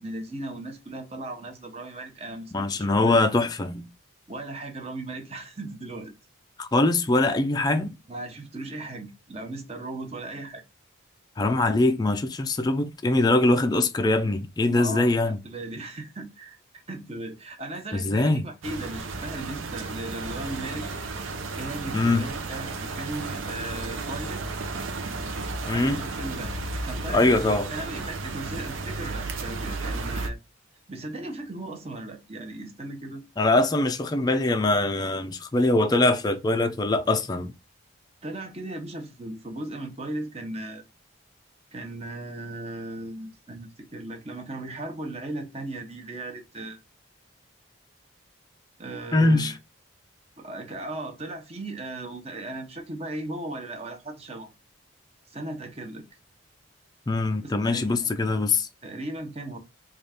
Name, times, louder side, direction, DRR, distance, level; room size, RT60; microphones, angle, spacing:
voice 1, 0.0-3.2 4.3-6.1 8.1-10.6 14.7-20.9 21.5-24.6 25.7-26.5 26.8-30.4 30.9-33.2 38.2-40.8 41.7-46.8 48.8-49.6 50.4-54.5 55.3-56.0 57.4-58.1 58.8-59.6, right 2 dB, 30° right, 0.8 m, -37 dB
voice 2, 2.5-3.8 6.6-7.9 11.4-15.4 17.9-18.4 21.9-22.2 25.7-26.0 27.1-27.7 33.4-37.5 49.1-49.5 57.1-58.7, left 2 dB, 20° left, 0.3 m, -22 dB
sound 1, 18.6-30.3, right 3 dB, 75° right, 0.6 m, -33 dB
3.9 x 2.4 x 3.4 m
head